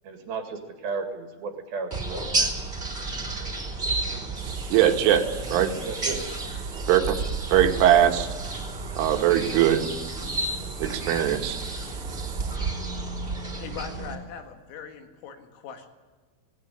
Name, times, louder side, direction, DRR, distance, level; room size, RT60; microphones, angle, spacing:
voice 1, 0.0-2.6 5.8-6.3, right 4 dB, 55° right, 6 dB, 3.2 m, -34 dB
sound 1, 1.9-14.1, right 3 dB, 15° right, 2.4 m, -31 dB
voice 2, 4.4-5.8 6.9-7.2 7.5-8.3 9.0-9.9 10.8-11.6, right 10 dB, 75° right, 6 dB, 3.8 m, -21 dB
voice 3, 13.6-15.9, left 7 dB, 80° left, 6 dB, 4.6 m, -40 dB
18.5 x 18.0 x 10.0 m, 1.4 s
omnidirectional pair, 5.8 m